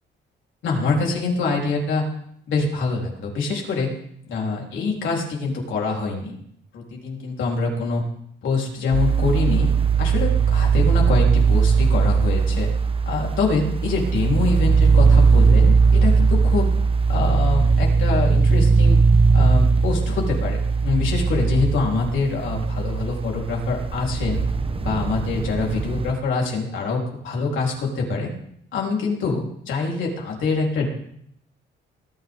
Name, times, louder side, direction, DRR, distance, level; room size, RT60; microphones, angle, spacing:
voice 1, 0.6-2.0 2.5-3.9 4.3-6.4 6.7-8.0 8.4-9.7 10.0-12.7 13.1-16.8 17.1-19.0 19.3-24.4 24.8-28.3 28.7-30.9, left 4 dB, 75° left, -1 dB, 3.9 m, -25 dB
sound 1, 8.9-26.1, right 4 dB, 30° right, 1.0 m, -19 dB
20.5 x 10.0 x 3.8 m, 0.71 s
cardioid pair, 90°, 20 cm